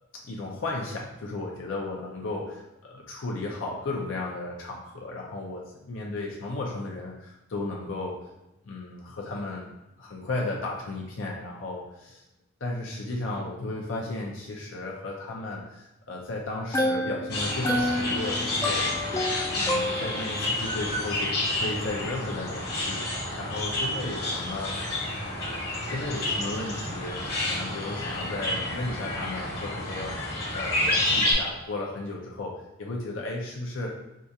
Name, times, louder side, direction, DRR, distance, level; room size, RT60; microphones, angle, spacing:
voice 1, 0.1-8.2 8.6-9.7 10.0-12.2 12.6-18.9 19.5-24.7 25.9-33.9, left 2 dB, 70° left, -2 dB, 0.6 m, -34 dB
sound 1, 16.5-20.5, left 1 dB, 15° left, 0.4 m, -29 dB
sound 2, 17.3-31.3, left 1 dB, 50° left, 1.2 m, -30 dB
4.7 x 2.3 x 2.7 m, 0.93 s
head